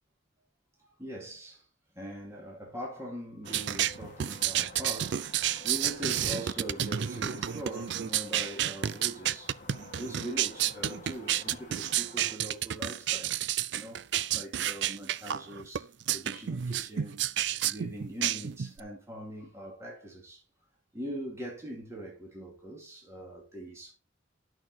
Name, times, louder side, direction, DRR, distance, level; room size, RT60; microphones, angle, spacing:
voice 1, 1.0-1.7 1.9-9.5 10.0-13.3 13.7-14.1 14.3-20.4 20.9-23.9, equal, 15° right, 2.6 m, -42 dB
sound 1, 3.4-12.4, left 3 dB, 40° left, 1.4 m, -51 dB
sound 2, 3.5-18.8, right 11 dB, 60° right, 0.4 m, -30 dB
11.0 x 6.4 x 4.0 m
head